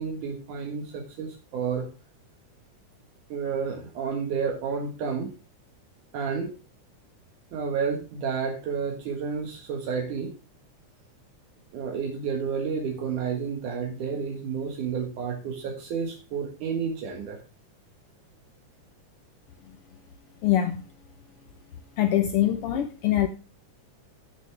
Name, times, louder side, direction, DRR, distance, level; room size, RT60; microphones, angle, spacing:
voice 1, 0.0-1.9 3.3-5.3 6.1-6.5 7.5-10.3 11.7-17.4, right 6 dB, 80° right, 3.2 m, -30 dB
voice 2, 20.4-20.8 22.0-23.3, left 12 dB, 70° left, 1.4 m, -23 dB
16.0 x 6.7 x 3.4 m
omnidirectional pair, 3.5 m